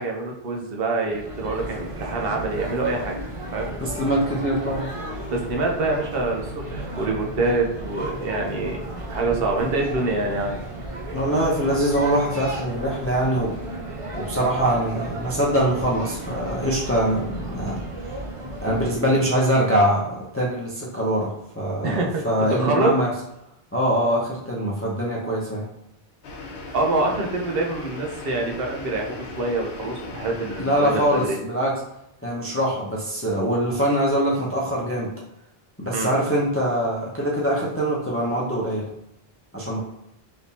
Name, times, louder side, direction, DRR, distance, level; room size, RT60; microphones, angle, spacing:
voice 1, 0.0-3.1 3.5-3.7 5.3-10.6 21.8-22.2 22.5-22.9 26.7-31.4 35.9-36.1, right 2 dB, 70° right, 1 dB, 0.9 m, -25 dB
sound 1, 1.0-19.0, right 1 dB, 35° right, 0.7 m, -34 dB
voice 2, 3.8-4.9 11.1-13.5 14.2-17.8 18.6-23.1 23.7-25.7 30.6-31.7 32.2-35.1 35.8-38.9 39.5-39.8, right 1 dB, 20° left, -4 dB, 0.5 m, -23 dB
sound 2, 26.2-31.3, left 3 dB, 80° left, 0.9 m, -37 dB
3.5 x 2.8 x 2.8 m, 0.82 s
omnidirectional pair, 1.0 m